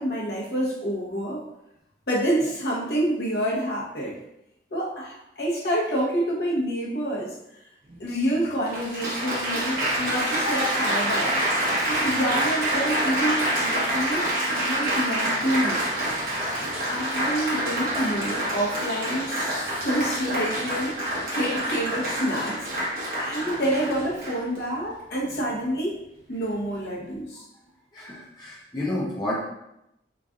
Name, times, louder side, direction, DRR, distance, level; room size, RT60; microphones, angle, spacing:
voice 1, 0.0-1.4 2.1-4.2 4.7-7.4 8.0-15.9 16.9-22.7 23.2-26.0 26.3-27.4, right 1 dB, 65° left, -5 dB, 1.0 m, -28 dB
Applause, 7.9-8.0 8.7-24.6 25.3-25.6, right 1 dB, 50° right, 0.9 m, -27 dB
voice 2, 27.9-29.4, left 1 dB, 25° left, -6 dB, 0.7 m, -31 dB
3.8 x 3.2 x 2.4 m, 0.83 s
head